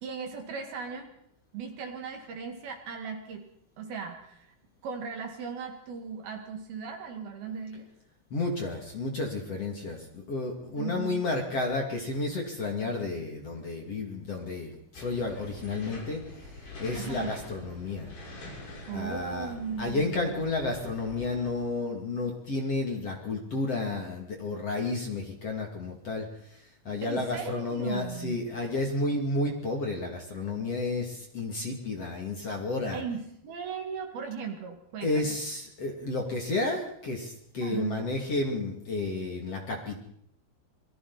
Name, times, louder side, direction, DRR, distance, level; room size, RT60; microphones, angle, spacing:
voice 1, 0.0-1.1 1.5-3.5 3.8-4.5 4.8-7.9 10.8-11.3 16.9-17.3 18.9-20.5 27.0-28.4 32.9-35.4 37.6-38.0, right 6 dB, 60° right, 4 dB, 3.6 m, -37 dB
voice 2, 8.3-18.1 18.9-19.5 19.8-33.0 35.0-40.0, left 2 dB, 40° left, 1 dB, 2.9 m, -32 dB
sound 1, 14.9-21.5, left 2 dB, 60° left, 8.7 m, -45 dB
27.0 x 23.0 x 4.2 m, 0.71 s
omnidirectional pair, 5.3 m